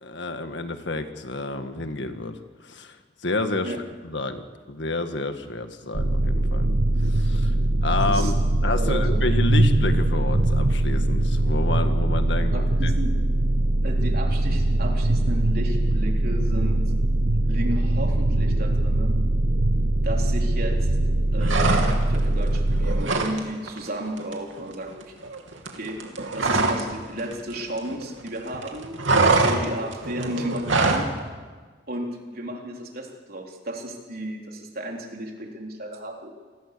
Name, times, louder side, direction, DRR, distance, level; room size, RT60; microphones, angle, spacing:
voice 1, 0.0-3.0 3.2-3.8 4.0-6.7 7.0-7.5 7.8-8.4 8.6-13.0, left 2 dB, 65° left, 7 dB, 1.8 m, -29 dB
sound 1, 5.9-23.0, right 1 dB, 70° right, 1.0 m, -22 dB
voice 2, 8.7-9.2 12.5-13.1 13.8-16.8 17.5-19.1 20.0-20.9 21.3-25.1 25.8-26.0 26.3-31.1 31.9-36.5, right 1 dB, 50° right, 1 dB, 4.0 m, -33 dB
sound 2, 21.4-22.2 22.5-23.4 23.7-23.9 24.2-26.9 27.2-28.3 28.5-31.1, right 3 dB, 90° right, 3.0 m, -23 dB
28.0 x 20.0 x 6.9 m, 1.4 s
head